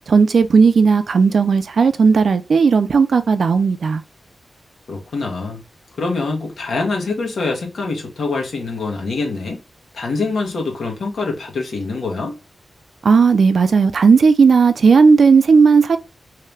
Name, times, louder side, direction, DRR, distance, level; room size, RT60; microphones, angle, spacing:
voice 1, 0.1-4.0 13.0-16.0, right 5 dB, 55° right, 0.4 m, -14 dB
voice 2, 4.9-5.6 6.0-9.6 9.9-12.4, left 3 dB, 75° left, 1.3 m, -24 dB
3.2 x 2.8 x 3.3 m
wide cardioid pair, 165°, 0 cm